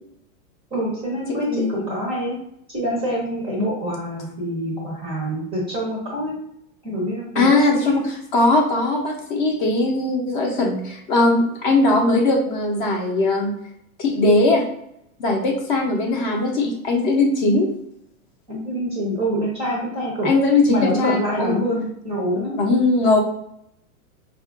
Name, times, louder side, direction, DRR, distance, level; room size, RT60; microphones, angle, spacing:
voice 1, 0.7-2.4 2.7-6.4 6.8-7.4 7.7-8.0 18.5-20.3 20.7-22.6, equal, 15° right, -3 dB, 0.5 m, -26 dB
voice 2, 7.4-8.0 8.3-13.5 14.0-14.6 15.2-17.7 20.2-21.5 22.6-23.2, left 2 dB, 35° left, 1 dB, 0.6 m, -19 dB
4.5 x 2.4 x 2.4 m, 0.75 s
hypercardioid pair, 140°, 44 cm